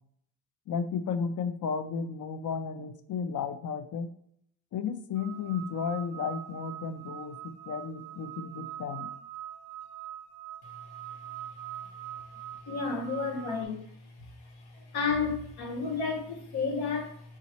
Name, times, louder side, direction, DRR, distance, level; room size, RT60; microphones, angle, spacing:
voice 1, 0.7-4.1 4.7-9.1, left 6 dB, 55° left, 0.6 m, -33 dB
sound 1, 5.2-13.6, right 12 dB, 65° right, 0.5 m, -43 dB
voice 2, 12.7-13.9 14.4-17.2, left 4 dB, 80° left, 1.1 m, -32 dB
3.7 x 3.0 x 4.2 m
cardioid pair, 90°, 37 cm